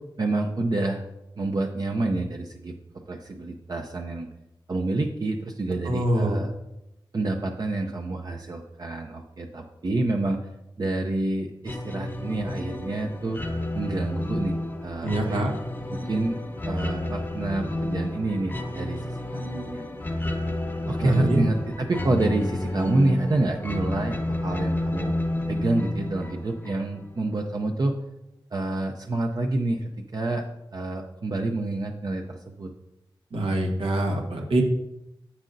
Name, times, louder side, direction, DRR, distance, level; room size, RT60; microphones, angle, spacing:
voice 1, 0.2-1.0 1.4-2.7 3.1-4.3 4.7-6.5 7.1-10.5 10.8-13.4 13.7-15.5 15.9-16.4 16.6-19.8 20.9-25.2 25.5-28.0 28.5-30.4 30.7-32.7, right 2 dB, 50° right, 2 dB, 0.7 m, -28 dB
voice 2, 5.8-6.4 15.0-15.5 21.0-21.4 33.3-34.6, right 1 dB, 85° right, 1 dB, 1.4 m, -24 dB
sound 1, 11.6-27.1, left 1 dB, 20° left, 0.8 m, -30 dB
9.7 x 7.4 x 2.6 m, 0.89 s
wide cardioid pair, 90°, 9 cm